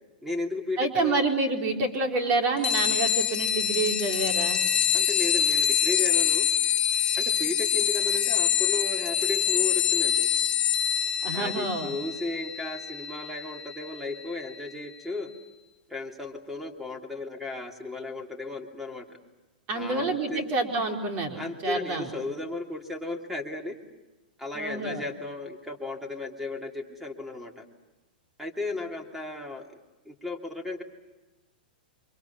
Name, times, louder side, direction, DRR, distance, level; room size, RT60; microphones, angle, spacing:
voice 1, 0.2-1.2 4.9-6.5 7.2-10.3 11.3-15.3 15.9-19.2 19.7-20.4 21.4-23.8 24.4-27.7 28.4-29.8 30.0-30.8, left 2 dB, 5° right, 4 dB, 2.8 m, -35 dB
voice 2, 0.8-4.6 11.2-11.9 19.7-22.1 24.5-25.0, right 3 dB, 35° right, 3 dB, 4.3 m, -28 dB
sound 1, 2.6-14.7, left 9 dB, 20° left, 1.8 m, -26 dB
29.5 x 26.0 x 7.2 m, 1.1 s
hypercardioid pair, 145°, 5 cm